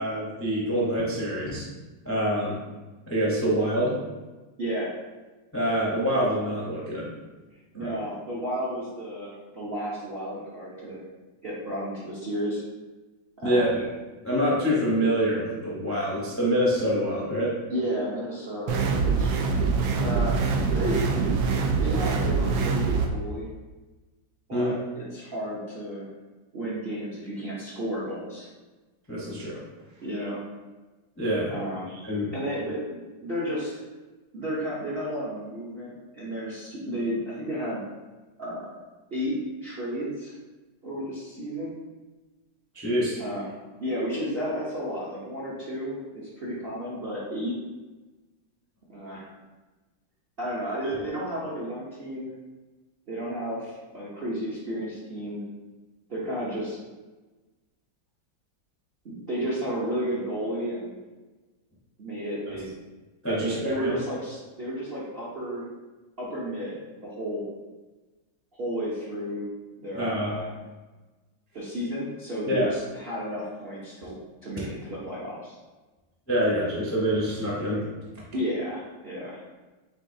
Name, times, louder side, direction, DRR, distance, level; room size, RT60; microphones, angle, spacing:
voice 1, 0.0-1.6 2.0-2.6 3.1-4.0 5.5-7.1 7.7-7.9 13.4-13.7 14.2-17.5 24.5-24.8 29.1-29.5 31.2-31.5 32.0-32.3 42.7-43.2 63.2-63.9 69.9-70.3 72.5-72.7 76.3-77.8, equal, 15° left, -6 dB, 0.4 m, -26 dB
voice 2, 4.6-4.9 7.7-11.0 11.4-12.6 13.4-13.7 17.7-19.3 20.0-20.4 20.7-21.0 21.8-23.5 24.5-26.1 26.5-28.5 30.0-30.4 31.5-32.0 32.3-33.7 34.3-37.8 38.4-38.7 39.1-40.3 40.8-41.7 43.2-43.4 43.8-47.5 48.9-49.3 50.4-52.3 53.1-55.4 56.1-56.8 59.0-61.0 62.0-62.7 63.3-65.6 66.2-67.5 68.6-69.5 69.8-70.5 71.5-75.6 78.3-79.4, equal, 50° right, -7 dB, 0.7 m, -32 dB
sound 1, 18.7-23.1, right 4 dB, 80° right, 1.3 m, -24 dB
7.2 x 2.7 x 2.7 m, 1.2 s
omnidirectional pair, 2.1 m